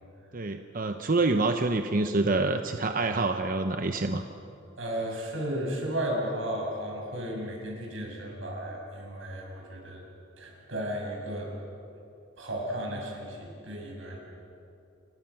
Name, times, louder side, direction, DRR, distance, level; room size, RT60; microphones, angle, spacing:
voice 1, 0.3-4.2, right 3 dB, 45° right, 6 dB, 0.8 m, -27 dB
voice 2, 4.8-10.0 10.4-11.5 12.4-14.2, right 1 dB, 75° right, -1 dB, 6.9 m, -34 dB
30.0 x 22.5 x 5.9 m, 2.7 s
head